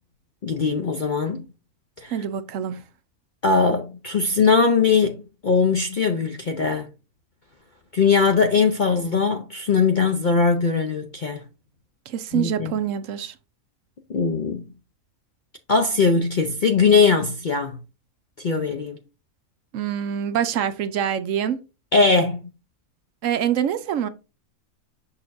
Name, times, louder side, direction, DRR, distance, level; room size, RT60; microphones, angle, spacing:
voice 1, 0.4-1.4 2.0-2.1 3.4-6.9 7.9-11.4 12.3-12.7 14.1-14.6 15.7-17.8 18.4-19.0 21.9-22.5, left 5 dB, 55° left, 0.5 m, -20 dB
voice 2, 2.1-2.8 12.1-13.3 19.7-21.6 23.2-24.1, right 9 dB, 65° right, 0.9 m, -25 dB
6.4 x 5.8 x 2.6 m
omnidirectional pair, 1.6 m